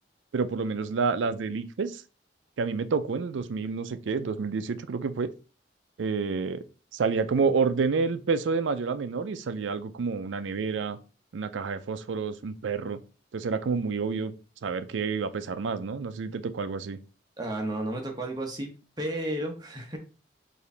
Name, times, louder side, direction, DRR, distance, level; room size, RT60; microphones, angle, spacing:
voice 1, 0.3-2.0 2.6-5.3 6.0-6.6 6.9-11.0 11.3-13.0 13.3-14.3 14.6-17.0, right 5 dB, 85° right, 12 dB, 0.4 m, -29 dB
voice 2, 17.4-18.7 19.0-20.0, right 1 dB, 20° right, 1 dB, 0.8 m, -32 dB
4.8 x 2.6 x 3.3 m, 0.35 s
head